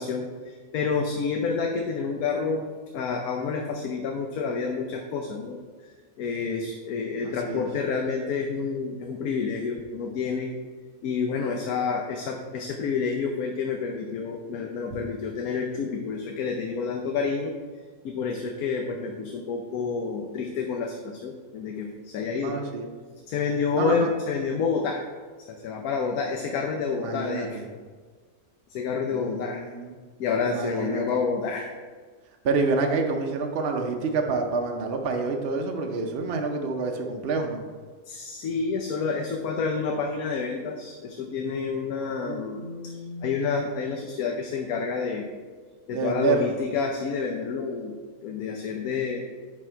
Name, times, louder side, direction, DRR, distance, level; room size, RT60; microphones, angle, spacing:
voice 1, 0.0-2.7 2.9-5.6 6.2-10.5 11.0-17.5 18.0-22.6 23.3-25.0 25.5-27.6 28.7-29.6 30.2-31.7 38.1-43.0 43.2-45.3 45.9-47.9 48.2-49.2, left 5 dB, 85° left, 2 dB, 1.2 m, -29 dB
voice 2, 7.2-7.6 22.3-22.9 23.7-24.1 27.0-27.6 29.1-30.0 30.5-31.0 32.4-37.6 42.2-43.4 45.9-46.5, right 3 dB, 50° right, 3 dB, 0.9 m, -28 dB
9.8 x 4.3 x 4.5 m, 1.5 s
omnidirectional pair, 1.5 m